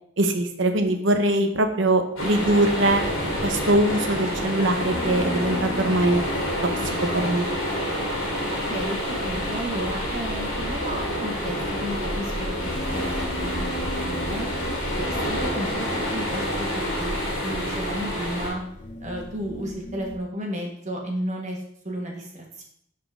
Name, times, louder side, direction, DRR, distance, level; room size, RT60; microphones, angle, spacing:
voice 1, 0.2-3.1 3.4-6.2 7.0-7.5, right 1 dB, 60° right, 7 dB, 0.9 m, -22 dB
sound 1, 2.2-18.5, equal, 70° left, 2.6 m, -28 dB
sound 2, 4.9-20.2, left 1 dB, 35° left, 0.7 m, -38 dB
voice 2, 8.5-9.0 9.2-12.3 12.6-14.5 14.9-15.9 16.1-18.6 19.0-22.6, equal, 35° right, 0 dB, 1.6 m, -33 dB
12.0 x 4.3 x 3.7 m, 0.70 s
head